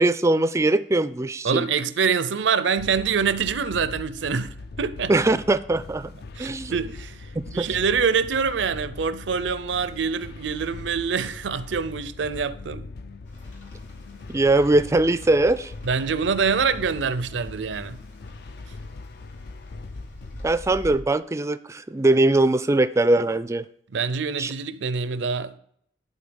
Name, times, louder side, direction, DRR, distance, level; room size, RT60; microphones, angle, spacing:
voice 1, 0.0-1.7 5.1-6.1 6.4-6.7 7.4-7.7 14.3-15.7 20.4-23.6 24.4-24.5, right 2 dB, 15° right, 0.3 m, -21 dB
voice 2, 1.4-5.1 6.4-12.9 15.8-18.0 23.9-25.6, right 5 dB, 85° right, 0.5 m, -25 dB
sound 1, 2.8-20.5, left 3 dB, 60° left, 0.4 m, -40 dB
Rain, 13.3-21.0, equal, 85° left, 3.1 m, -46 dB
11.5 x 4.0 x 5.2 m
head